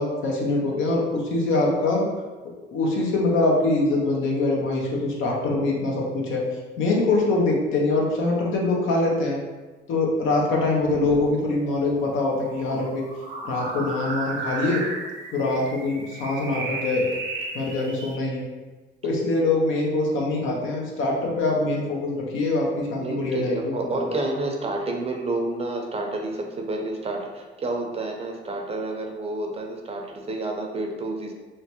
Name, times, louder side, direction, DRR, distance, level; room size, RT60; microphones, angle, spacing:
voice 1, 0.0-2.1 2.7-6.4 6.8-9.4 9.9-13.0 13.4-14.8 15.3-17.1 17.5-18.5 19.0-24.1, left 2 dB, 85° left, -1 dB, 0.7 m, -24 dB
sound 1, 10.7-18.2, right 3 dB, 75° right, 0.7 m, -35 dB
voice 2, 23.0-31.3, right 2 dB, 30° right, 2 dB, 0.5 m, -29 dB
3.2 x 2.0 x 2.8 m, 1.3 s
cardioid pair, 90°, 20 cm